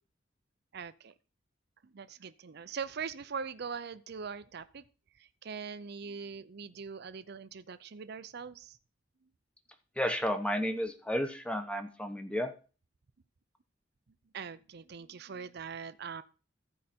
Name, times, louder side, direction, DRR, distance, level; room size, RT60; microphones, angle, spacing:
voice 1, 0.7-1.1 1.8-4.8 5.2-8.8 14.3-16.2, right 6 dB, 55° right, 13 dB, 0.5 m, -42 dB
voice 2, 10.0-12.5, equal, 5° left, 7 dB, 1.0 m, -32 dB
14.5 x 5.0 x 4.3 m, 0.36 s
head